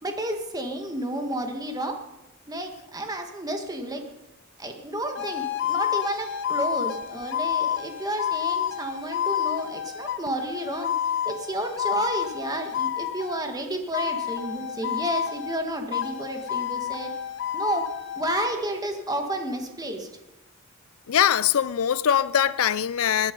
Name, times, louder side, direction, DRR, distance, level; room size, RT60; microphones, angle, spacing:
voice 1, 0.0-2.0 2.5-4.0 4.6-10.9 11.2-17.1 17.5-17.8 18.1-20.1, right 1 dB, 20° right, 1.8 m, -31 dB
sound 1, 5.2-13.5 13.9-15.6 15.9-18.5, left 9 dB, 60° left, 1.0 m, -29 dB
voice 2, 21.1-23.3, left 9 dB, 85° left, 0.5 m, -22 dB
20.0 x 10.5 x 5.3 m
head